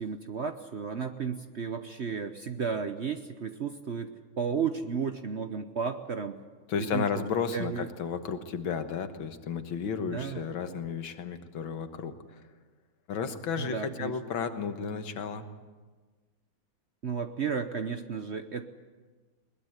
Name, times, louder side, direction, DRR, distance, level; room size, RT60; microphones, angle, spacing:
voice 1, 0.0-6.4 6.8-7.2 7.5-7.9 10.0-10.5 13.6-14.1 17.0-18.7, right 6 dB, 50° right, 8 dB, 0.8 m, -33 dB
voice 2, 6.7-12.4 13.1-15.5, left 6 dB, 90° left, 8 dB, 2.2 m, -33 dB
21.5 x 19.5 x 8.1 m, 1.4 s
omnidirectional pair, 2.1 m